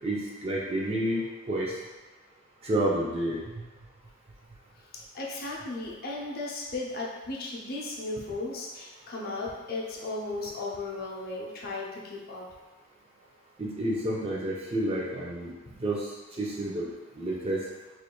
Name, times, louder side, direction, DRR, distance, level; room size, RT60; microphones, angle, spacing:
voice 1, 0.0-1.7 2.6-3.6 13.6-15.5 15.8-16.0 16.4-16.9 17.2-17.6, right 1 dB, 30° right, -4 dB, 0.6 m, -29 dB
voice 2, 5.1-12.5 15.7-15.8, left 2 dB, 45° left, -3 dB, 0.7 m, -35 dB
4.6 x 3.2 x 2.2 m, 1.2 s
head